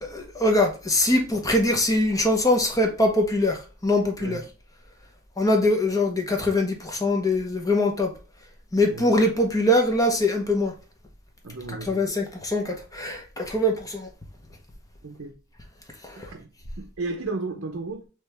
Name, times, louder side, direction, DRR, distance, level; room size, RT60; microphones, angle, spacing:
voice 1, 0.0-4.4 5.4-8.1 8.7-10.7 11.7-14.1 16.0-16.3, left 1 dB, 15° left, 0.8 m, -23 dB
voice 2, 11.4-12.0 15.0-15.4 16.2-16.5 16.8-18.0, right 3 dB, 60° right, 0.6 m, -33 dB
3.4 x 2.9 x 3.3 m
head